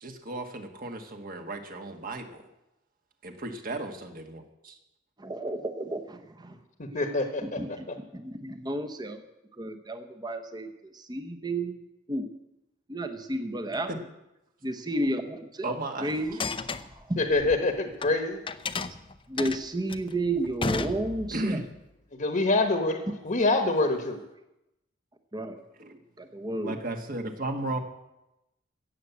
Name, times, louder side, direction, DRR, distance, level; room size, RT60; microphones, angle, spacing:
voice 1, 0.0-2.5 3.2-4.8 13.9-14.0 15.6-16.1 21.3-21.6 25.8-26.0 26.6-27.8, right 2 dB, 50° right, 5 dB, 1.6 m, -34 dB
voice 2, 5.2-6.6 6.9-7.0 7.4-7.9 8.1-9.2 9.6-11.8 12.1-12.3 12.9-13.9 14.6-17.2 19.3-21.6 25.3-25.6 26.2-26.8, right 1 dB, 20° right, 6 dB, 0.9 m, -32 dB
voice 3, 6.9-7.6 17.2-18.4 22.2-24.2, left 2 dB, 45° left, 5 dB, 1.2 m, -25 dB
sound 1, 16.2-18.1 18.5-21.5, left 4 dB, 30° left, 0.6 m, -33 dB
16.0 x 7.4 x 8.2 m, 0.91 s
head